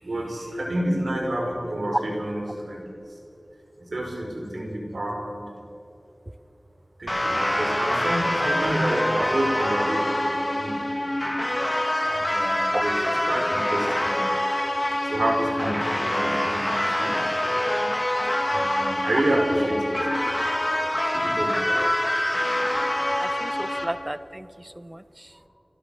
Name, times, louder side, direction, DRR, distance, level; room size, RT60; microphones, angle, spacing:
voice 1, 0.0-2.9 3.8-5.4 7.0-10.8 12.0-14.3 15.0-17.2 18.5-19.9 21.1-21.6 23.5-23.6, right 1 dB, 90° right, 1 dB, 4.4 m, -28 dB
sound 1, 7.1-23.8, left 1 dB, 25° left, 3.1 m, -25 dB
voice 2, 23.2-25.3, right 1 dB, 25° right, 16 dB, 0.7 m, -34 dB
30.0 x 13.0 x 7.0 m, 3.0 s
wide cardioid pair, 45°, 0 cm